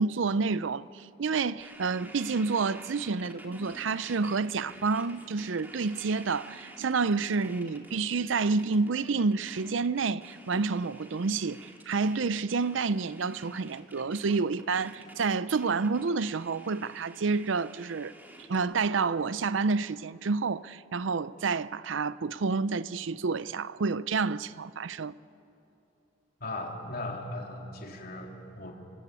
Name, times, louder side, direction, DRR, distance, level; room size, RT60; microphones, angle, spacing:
voice 1, 0.0-18.1 18.5-25.1, right 4 dB, 80° right, 0.6 m, -29 dB
sound 1, 1.6-18.6, right 1 dB, 10° right, 2.5 m, -50 dB
voice 2, 26.4-28.7, left 2 dB, 55° left, 3.6 m, -38 dB
26.0 x 23.5 x 8.4 m
head